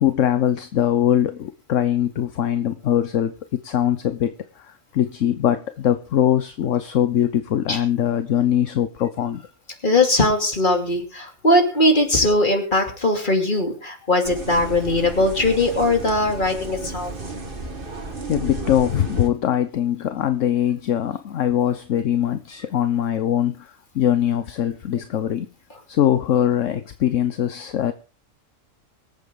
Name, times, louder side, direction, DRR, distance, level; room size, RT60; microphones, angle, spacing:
voice 1, 0.0-9.4 18.0-25.5 25.9-27.9, left 10 dB, 70° left, 10 dB, 1.2 m, -22 dB
voice 2, 9.8-17.1, left 1 dB, 35° left, 4 dB, 2.9 m, -20 dB
sound 1, 14.2-19.3, right 3 dB, 40° right, 2.0 m, -33 dB
24.5 x 8.3 x 3.8 m, 0.35 s
omnidirectional pair, 1.4 m